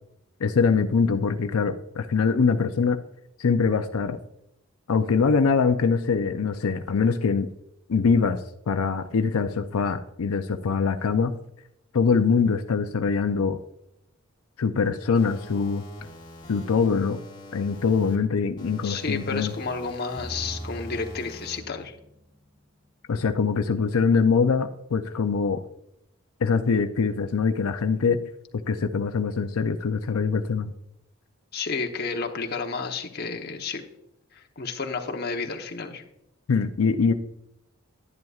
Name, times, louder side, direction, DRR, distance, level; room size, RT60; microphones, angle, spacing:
voice 1, 0.4-3.0 3.4-4.2 4.9-7.5 7.9-8.4 8.7-11.3 11.9-13.6 14.6-15.8 16.5-17.2 17.5-19.5 23.1-25.6 26.4-28.2 28.7-30.7 36.5-37.1, left 5 dB, 90° left, 7 dB, 0.5 m, -23 dB
sound 1, 15.1-18.1 18.6-21.6, left 1 dB, 20° left, 2.1 m, -44 dB
voice 2, 18.8-22.0 31.5-33.8 34.3-36.0, left 4 dB, 50° left, 4 dB, 1.0 m, -31 dB
sound 2, 20.2-22.6, right 1 dB, ahead, 0.5 m, -40 dB
11.0 x 10.5 x 2.4 m, 0.83 s
head